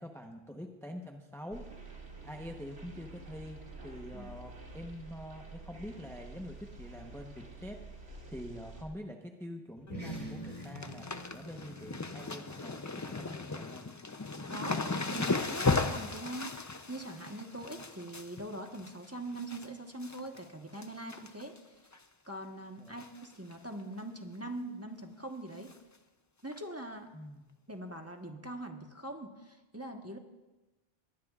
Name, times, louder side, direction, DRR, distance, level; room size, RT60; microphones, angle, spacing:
voice 1, 0.0-1.7 2.2-13.9 22.8-23.0 27.1-27.5, equal, 5° left, 2 dB, 0.9 m, -45 dB
sound 1, 1.5-8.8, right 3 dB, 85° right, 2.6 m, -49 dB
sound 2, 9.8-14.6, right 1 dB, 40° left, 3.9 m, -47 dB
sound 3, 9.9-10.2 10.4-19.7 20.0-20.4 20.8-21.6 21.9-22.0 23.0-23.3 23.5-23.6 24.0-24.1 25.7-25.8 26.5-26.6, left 3 dB, 25° left, 0.4 m, -36 dB
voice 2, 14.5-14.8 15.1-21.9 22.3-25.7 26.4-27.1 27.7-30.2, right 1 dB, 15° right, 3 dB, 1.1 m, -42 dB
22.5 x 19.0 x 2.4 m, 1.1 s
omnidirectional pair, 1.0 m